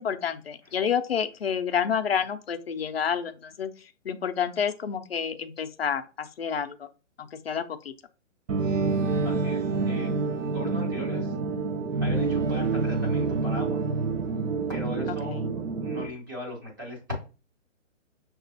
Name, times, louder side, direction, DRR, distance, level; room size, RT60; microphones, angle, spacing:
voice 1, 0.0-6.9 7.2-7.9 15.2-15.5, left 7 dB, 50° left, 8 dB, 0.5 m, -29 dB
sound 1, 8.5-16.1, right 4 dB, 75° right, 0.7 m, -27 dB
voice 2, 9.2-10.1 10.4-11.3 12.0-13.8 14.7-17.1, left 1 dB, 15° right, -3 dB, 0.8 m, -38 dB
5.9 x 2.4 x 2.7 m, 0.33 s
hypercardioid pair, 175°, 38 cm